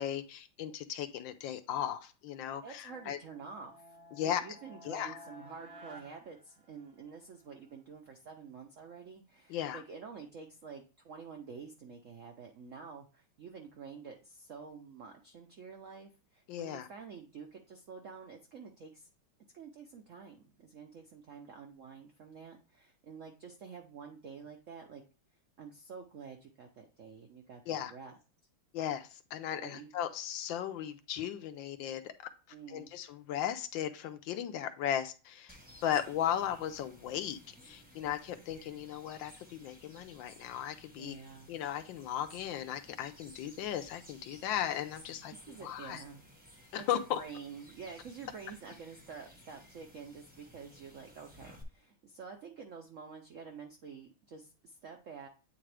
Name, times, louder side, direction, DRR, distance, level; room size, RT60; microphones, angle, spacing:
voice 1, 0.0-3.2 4.1-4.4 4.8-5.2 9.5-9.8 16.5-16.9 27.7-27.9 28.7-32.1 32.7-41.2 41.5-45.3 45.6-46.0 46.7-47.2, left 10 dB, 75° left, 9 dB, 1.3 m, -36 dB
voice 2, 2.6-19.1 19.5-25.0 25.6-28.1 29.6-29.9 32.5-32.9 41.0-41.5 45.5-46.3 46.7-55.3, right 5 dB, 70° right, 3 dB, 0.7 m, -49 dB
sound 1, 2.8-7.2, equal, 90° right, 2.0 m, -54 dB
sound 2, 35.5-51.6, equal, 5° right, 0.7 m, -57 dB
8.6 x 3.7 x 3.3 m, 0.34 s
omnidirectional pair, 2.2 m